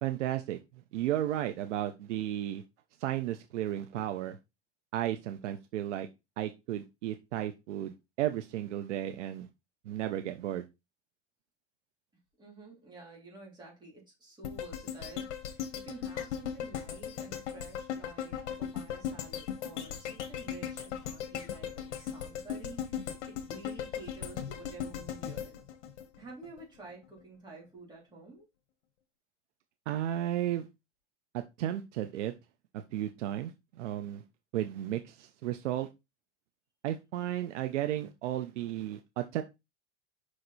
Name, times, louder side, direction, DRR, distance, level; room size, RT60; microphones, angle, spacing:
voice 1, 0.0-0.6 0.9-2.6 3.0-4.4 4.9-6.1 6.4-9.5 9.9-10.6 29.9-30.7 31.3-32.3 32.7-33.5 33.8-34.2 34.5-35.9 36.8-39.4, right 12 dB, 80° right, 8 dB, 0.9 m, -33 dB
voice 2, 12.4-25.6 26.2-28.5, right 3 dB, 10° right, -3 dB, 3.1 m, -50 dB
sound 1, 14.4-26.6 27.0-27.1, left 9 dB, 75° left, 1.5 m, -38 dB
5.8 x 4.9 x 4.1 m, 0.24 s
supercardioid pair, 160°, 35 cm